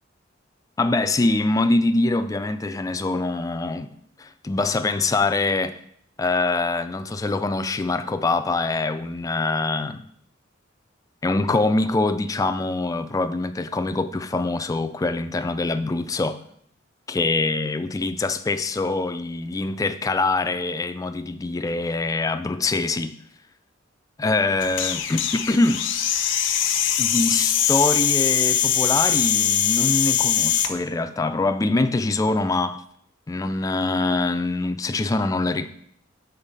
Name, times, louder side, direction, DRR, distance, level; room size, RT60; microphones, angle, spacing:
voice 1, 0.8-3.9 4.2-5.8 6.2-10.0 11.2-16.4 17.1-23.2 24.2-25.8 27.0-32.8 33.3-35.7, left 3 dB, 15° left, 0.3 m, -24 dB
sound 1, 24.6-30.7, left 10 dB, 65° left, 0.6 m, -22 dB
7.2 x 4.0 x 5.2 m
head